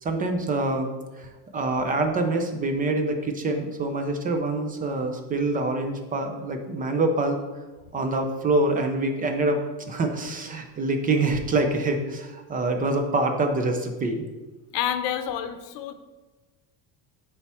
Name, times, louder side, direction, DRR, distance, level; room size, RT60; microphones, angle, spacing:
voice 1, 0.0-0.9 1.2-1.3 1.5-7.4 7.9-9.6 9.9-14.3, right 2 dB, 20° right, 5 dB, 0.4 m, -25 dB
voice 2, 14.7-15.9, left 10 dB, 85° left, 9 dB, 0.7 m, -28 dB
8.5 x 3.4 x 4.2 m, 1.2 s
cardioid pair, 160°, 44 cm